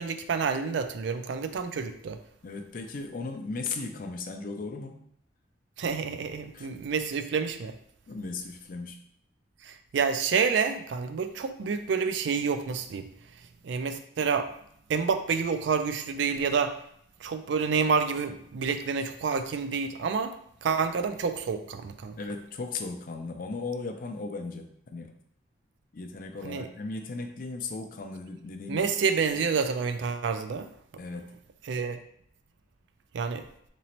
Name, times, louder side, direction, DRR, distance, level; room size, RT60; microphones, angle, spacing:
voice 1, 0.0-2.2 5.8-7.8 9.6-13.1 13.6-14.5 14.9-16.7 17.2-20.3 20.6-22.2 26.4-26.7 28.7-30.7 31.7-32.0 33.1-33.5, right 5 dB, 65° right, 8 dB, 0.3 m, -28 dB
voice 2, 2.4-5.0 6.5-6.7 8.1-9.0 22.2-25.2 25.9-28.9 31.0-31.3, left 3 dB, 45° left, 5 dB, 0.4 m, -36 dB
3.8 x 3.0 x 2.9 m, 0.70 s
head